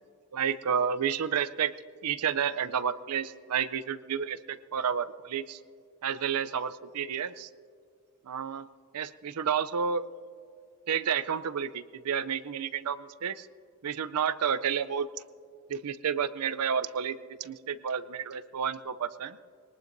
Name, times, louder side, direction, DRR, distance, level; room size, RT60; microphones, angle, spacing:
voice 1, 0.3-1.7 2.0-5.6 6.0-7.5 8.2-8.7 8.9-10.0 10.9-13.5 13.8-15.1 15.7-19.4, right 7 dB, 85° right, 14 dB, 0.5 m, -30 dB
22.0 x 19.0 x 2.6 m, 2.2 s
head